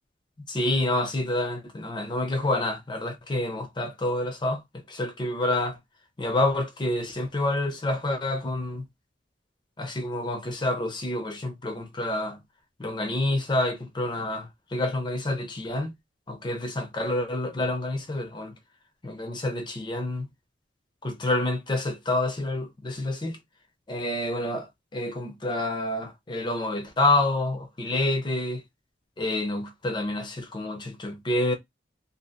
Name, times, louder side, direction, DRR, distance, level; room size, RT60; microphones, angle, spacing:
voice 1, 0.5-5.8 6.2-8.9 9.8-12.4 12.8-15.9 16.3-18.5 19.0-20.3 21.0-23.4 23.9-28.6 29.2-31.5, left 2 dB, 25° left, 0.5 m, -28 dB
2.7 x 2.4 x 2.4 m
head